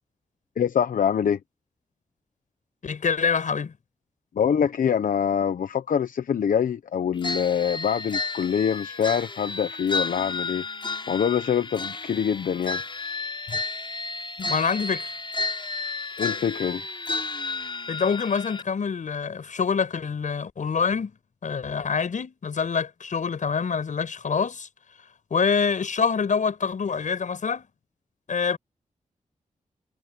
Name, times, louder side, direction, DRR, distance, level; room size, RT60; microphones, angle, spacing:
voice 1, 0.6-1.4 4.4-10.6 11.1-12.8 16.2-16.8, left 8 dB, 90° left, 0.9 m, -24 dB
voice 2, 2.8-3.7 13.5-13.6 14.4-15.1 17.9-21.1 21.4-24.7 25.3-27.7 28.3-28.6, left 6 dB, 70° left, 6.2 m, -26 dB
sound 1, 7.2-18.6, left 3 dB, 35° left, 5.7 m, -32 dB
wide cardioid pair, 100°, 14 cm